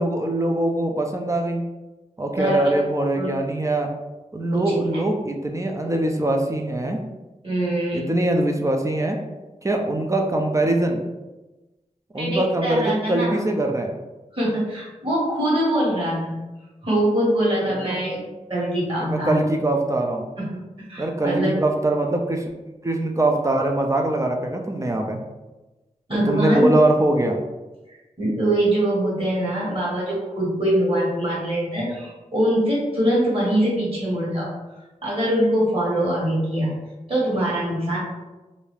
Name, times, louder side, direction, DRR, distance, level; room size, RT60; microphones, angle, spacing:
voice 1, 0.0-1.7 2.2-3.9 4.3-7.0 7.9-9.2 9.6-11.0 12.1-13.9 17.7-18.0 19.0-20.3 21.0-22.4 22.8-25.2 26.1-27.4, right 1 dB, 25° right, 2 dB, 0.4 m, -22 dB
voice 2, 2.4-2.7 3.2-3.3 4.5-4.8 7.4-8.1 12.2-13.4 14.3-16.4 16.8-18.2 18.5-19.3 20.4-21.5 26.1-26.7 28.2-34.5 35.0-36.7 37.1-38.0, right 1 dB, 40° right, -6 dB, 1.4 m, -23 dB
2.6 x 2.3 x 3.3 m, 1.1 s
wide cardioid pair, 70°, 14 cm